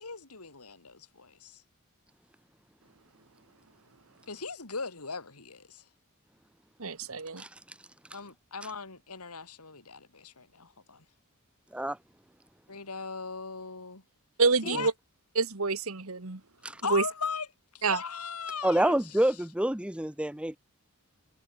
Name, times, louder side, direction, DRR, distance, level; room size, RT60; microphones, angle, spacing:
voice 1, 0.0-1.6 4.3-5.8 8.1-11.0 12.7-14.0 14.6-14.9 16.8-17.5 17.7-19.0, left 5 dB, 85° left, 3.3 m, -38 dB
voice 2, 6.8-7.4 14.4-14.9 15.3-16.4 16.9-17.0 17.8-18.0, right 4 dB, 70° right, 1.6 m, -27 dB
voice 3, 18.6-20.6, right 1 dB, 5° right, 0.6 m, -27 dB
head